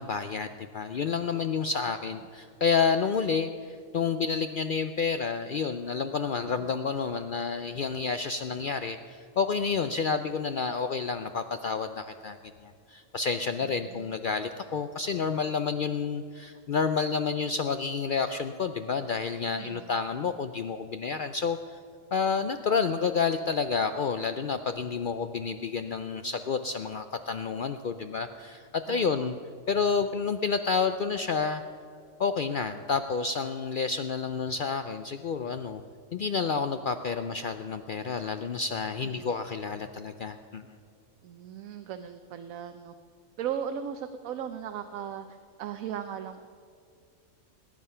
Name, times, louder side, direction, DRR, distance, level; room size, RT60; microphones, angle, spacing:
voice 1, 0.0-21.8 22.1-29.4 29.7-31.6 32.2-35.8 36.1-40.6, left 5 dB, 65° left, 9 dB, 0.5 m, -29 dB
voice 2, 13.6-14.2 19.6-19.9 28.9-29.3 39.0-39.4 41.2-42.9 43.4-46.5, right 8 dB, 85° right, 8 dB, 1.1 m, -38 dB
20.0 x 9.5 x 5.5 m, 2.3 s
omnidirectional pair, 1.4 m